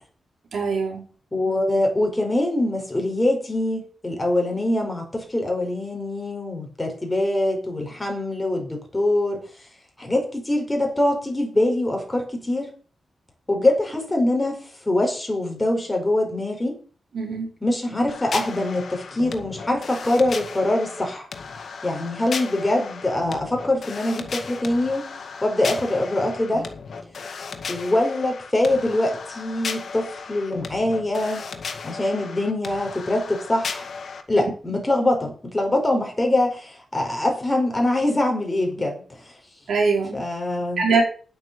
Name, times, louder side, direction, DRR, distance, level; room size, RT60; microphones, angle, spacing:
voice 1, 0.5-1.0 17.1-17.5 39.7-40.2 40.8-41.0, right 4 dB, 70° right, 4.7 m, -22 dB
voice 2, 1.3-9.4 10.0-12.7 13.5-16.8 17.6-21.3 21.8-25.1 25.4-26.7 27.7-31.4 31.8-33.9 34.3-39.3 40.1-40.8, left 1 dB, 15° left, 5.2 m, -23 dB
sound 1, 18.1-34.2, left 5 dB, 60° left, 2.0 m, -35 dB
10.5 x 8.9 x 7.0 m
wide cardioid pair, 135°, 0 cm